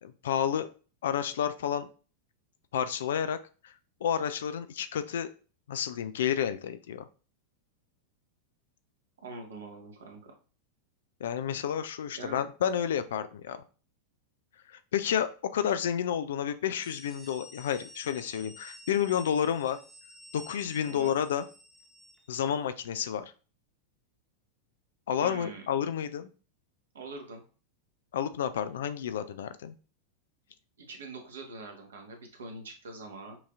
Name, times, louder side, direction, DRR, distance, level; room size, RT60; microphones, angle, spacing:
voice 1, 0.0-0.7 1.0-1.9 2.7-3.4 3.6-3.7 4.0-5.3 5.7-7.0 11.2-13.6 14.7-19.8 20.3-21.4 22.3-23.2 25.1-26.3 28.1-29.7, left 9 dB, 60° left, 12 dB, 0.4 m, -30 dB
voice 2, 9.2-10.3 12.2-12.4 20.9-21.2 25.2-25.6 26.9-27.4 30.8-33.4, right 3 dB, 65° right, 3 dB, 1.0 m, -43 dB
sound 1, 16.6-22.3, left 1 dB, 5° left, 0.7 m, -51 dB
5.8 x 2.7 x 2.4 m, 0.37 s
figure-of-eight pair, 90°, 0 cm